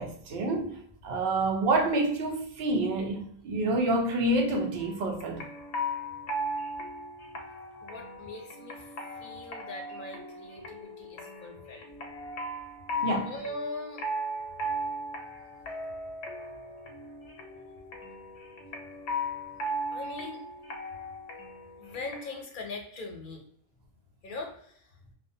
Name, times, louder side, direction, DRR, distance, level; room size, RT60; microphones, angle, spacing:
voice 1, 0.0-5.4 13.0-13.3, right 2 dB, 75° right, 2 dB, 0.8 m, -28 dB
sound 1, 4.8-22.4, equal, 90° left, 0.8 m, -37 dB
voice 2, 7.8-11.9 13.3-14.0 19.9-20.4 21.8-23.4 24.2-24.8, left 2 dB, 60° left, 1 dB, 0.6 m, -41 dB
2.3 x 2.1 x 2.6 m, 0.66 s
omnidirectional pair, 1.1 m